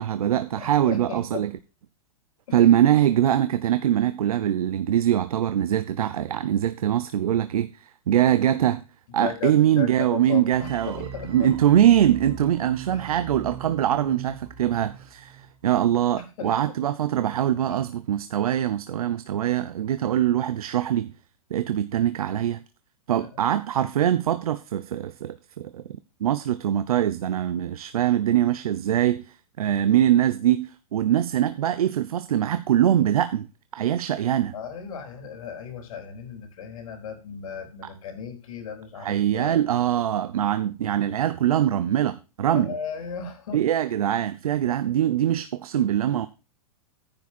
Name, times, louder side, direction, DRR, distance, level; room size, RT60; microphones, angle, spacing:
voice 1, 0.0-1.5 2.5-8.8 9.1-21.1 21.5-22.6 23.1-25.8 26.2-33.5 33.7-34.5 39.0-42.7 43.5-46.3, right 11 dB, 90° right, 0.8 m, -23 dB
voice 2, 0.5-1.5 2.5-2.6 9.2-11.5 12.9-13.1 16.2-16.7 17.7-17.8 20.0-20.2 23.1-23.4 34.5-39.7 40.3-40.5 42.5-43.6 44.7-44.8, left 6 dB, 75° left, 3.9 m, -36 dB
sound 1, 10.5-15.6, right 6 dB, 30° right, 2.4 m, -41 dB
10.5 x 8.6 x 4.5 m
hypercardioid pair, 150°, 18 cm